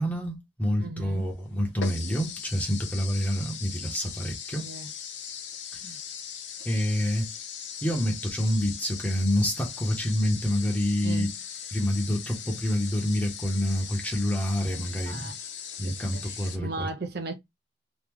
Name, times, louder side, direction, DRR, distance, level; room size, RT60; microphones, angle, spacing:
voice 1, 0.0-4.7 6.6-7.3 7.8-11.3 11.7-15.3 15.8-16.9, equal, 10° left, 1.0 m, -27 dB
voice 2, 0.8-1.3 4.0-4.1 4.6-4.9 5.8-6.0 11.0-11.4 15.1-15.4 15.8-17.3, right 3 dB, 60° right, 0.7 m, -37 dB
sound 1, 1.1-1.2 1.8-16.6, left 7 dB, 70° left, 0.7 m, -39 dB
3.0 x 2.4 x 3.6 m
head